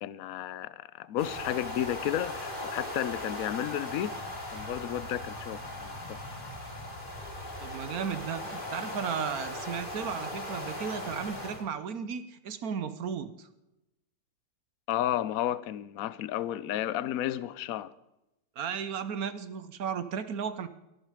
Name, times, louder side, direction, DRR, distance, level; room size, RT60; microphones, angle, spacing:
voice 1, 0.0-4.2 4.5-6.2 14.9-17.9, left 12 dB, 65° left, 0.9 m, -32 dB
sound 1, 1.2-11.6, left 1 dB, 25° left, 3.1 m, -38 dB
voice 2, 7.6-13.5 18.6-20.7, right 7 dB, 60° right, 1.2 m, -35 dB
14.0 x 12.0 x 5.0 m
omnidirectional pair, 2.1 m